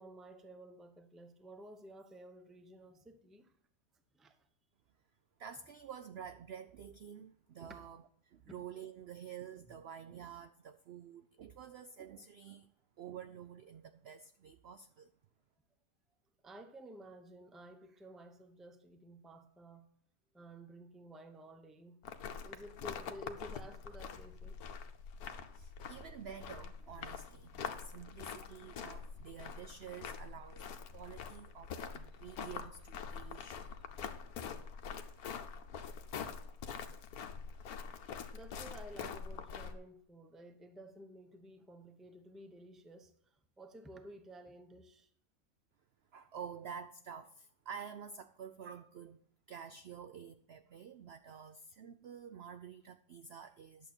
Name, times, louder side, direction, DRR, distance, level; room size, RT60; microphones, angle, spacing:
voice 1, 0.0-3.5 4.2-4.3 7.7-7.8 8.4-8.5 9.7-10.1 16.4-19.8 20.3-22.0 22.4-24.5 33.6-33.7 38.3-43.1 43.6-45.1, right 1 dB, ahead, 0.5 m, -53 dB
voice 2, 5.4-12.7 13.0-15.1 25.5-33.7 46.1-49.2 49.5-53.9, right 7 dB, 65° right, 0.6 m, -49 dB
sound 1, 22.0-39.7, left 6 dB, 80° left, 1.3 m, -45 dB
11.0 x 7.3 x 4.4 m
omnidirectional pair, 1.6 m